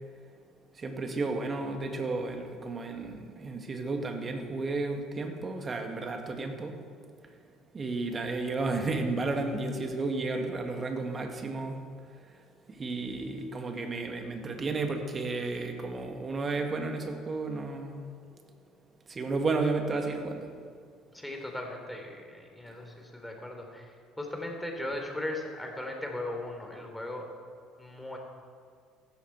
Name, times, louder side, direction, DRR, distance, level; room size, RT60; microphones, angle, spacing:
voice 1, 0.8-6.8 7.7-11.8 12.7-18.0 19.1-20.5, right 3 dB, 35° right, 5 dB, 2.0 m, -32 dB
voice 2, 21.1-27.2 27.8-28.2, left 1 dB, 5° left, 2 dB, 3.4 m, -38 dB
15.0 x 12.0 x 4.7 m, 2.1 s
hypercardioid pair, 60°, 0 cm